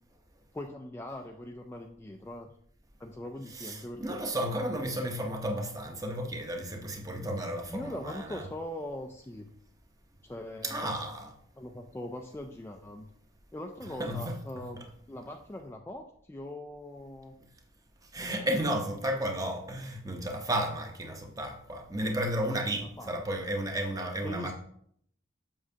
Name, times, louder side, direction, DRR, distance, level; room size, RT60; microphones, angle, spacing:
voice 1, 0.5-2.5 3.0-4.2 7.7-9.5 10.2-11.0 11.5-13.1 13.5-17.3 18.2-18.5 22.8-23.2 24.2-24.5, left 1 dB, 10° left, 0.3 m, -41 dB
voice 2, 3.5-8.5 10.6-11.3 14.0-14.4 18.1-24.5, right 1 dB, 20° right, 0.8 m, -33 dB
7.3 x 6.1 x 2.7 m
head